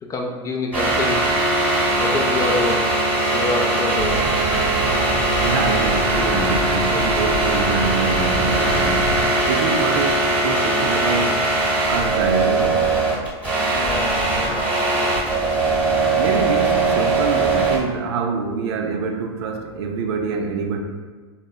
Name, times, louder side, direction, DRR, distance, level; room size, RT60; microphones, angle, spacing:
voice 1, 0.0-1.3 2.0-2.9 3.3-4.3 13.7-15.2, left 2 dB, 20° left, 1 dB, 0.3 m, -27 dB
sound 1, 0.7-17.8, right 2 dB, 10° right, 0.9 m, -20 dB
sound 2, 4.0-9.3, right 1 dB, 35° right, 0.7 m, -28 dB
voice 2, 5.4-11.4 11.9-12.8 16.1-20.8, right 4 dB, 70° right, 4 dB, 0.4 m, -25 dB
3.5 x 2.0 x 2.2 m, 1.5 s
hypercardioid pair, 110°, 14 cm